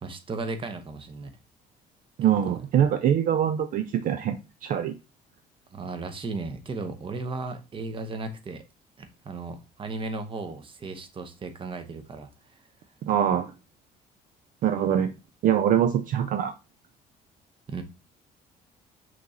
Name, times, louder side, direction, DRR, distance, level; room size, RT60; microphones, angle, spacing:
voice 1, 0.0-1.4 2.4-2.6 5.7-8.6 9.0-12.3 17.7-17.8, right 3 dB, 30° right, 0.8 m, -35 dB
voice 2, 2.2-4.9 13.1-13.5 14.6-15.1 15.4-16.5, right 9 dB, 55° right, 0.4 m, -23 dB
5.9 x 3.1 x 2.7 m
cardioid pair, 110°, 17 cm